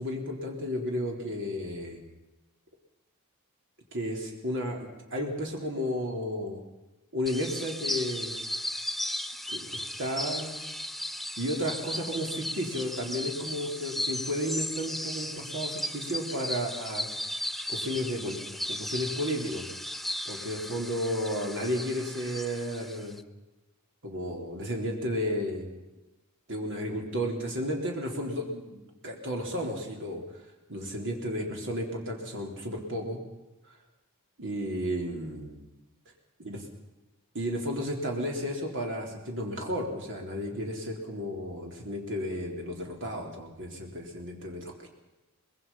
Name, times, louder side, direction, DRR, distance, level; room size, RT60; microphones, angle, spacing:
voice 1, 0.0-2.0 3.9-6.6 7.1-8.3 9.5-10.6 11.4-17.1 17.7-19.6 20.3-23.2 24.0-25.7 26.5-30.4 30.7-33.2 34.4-35.6 36.5-36.6 37.3-44.9, equal, 60° right, 1 dB, 3.7 m, -33 dB
sound 1, 7.3-23.2, left 1 dB, ahead, 0.6 m, -36 dB
24.5 x 21.5 x 5.7 m, 1.0 s
head